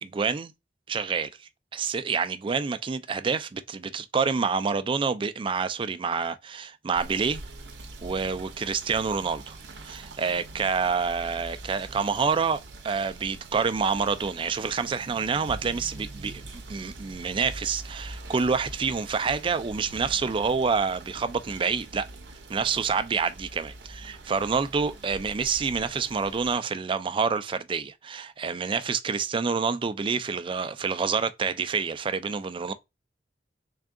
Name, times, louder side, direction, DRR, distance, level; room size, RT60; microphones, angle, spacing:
voice 1, 0.0-0.5 0.9-7.4 8.0-9.6 9.8-12.6 12.8-16.4 16.7-22.1 22.5-23.7 24.0-32.7, right 5 dB, 30° right, 0.3 m, -27 dB
Rain / Motor vehicle (road), 6.9-26.5, right 2 dB, 70° right, 0.7 m, -43 dB
3.6 x 2.3 x 3.6 m
head